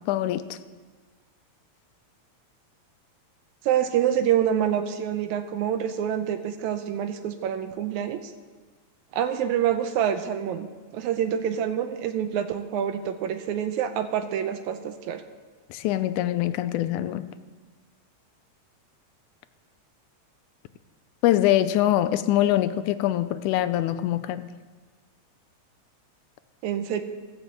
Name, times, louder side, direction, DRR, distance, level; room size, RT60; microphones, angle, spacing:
voice 1, 0.1-0.6 15.7-17.3 21.2-24.5, left 13 dB, 85° left, 12 dB, 2.1 m, -24 dB
voice 2, 3.7-8.2 9.1-10.7 10.9-15.2 26.6-27.0, right 9 dB, 80° right, 8 dB, 2.0 m, -26 dB
14.5 x 5.9 x 7.7 m, 1.4 s
omnidirectional pair, 3.4 m